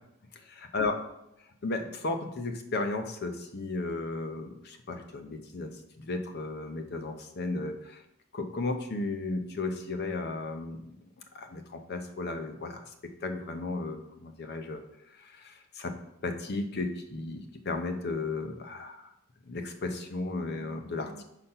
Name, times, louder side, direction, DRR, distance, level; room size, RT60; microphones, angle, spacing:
voice 1, 0.5-0.9 1.6-5.7 6.0-8.0 8.3-11.0 11.3-12.8 13.2-14.8 15.2-16.0 16.2-19.1 19.5-21.2, left 3 dB, 50° left, 6 dB, 0.7 m, -34 dB
5.7 x 4.1 x 5.4 m, 0.83 s
head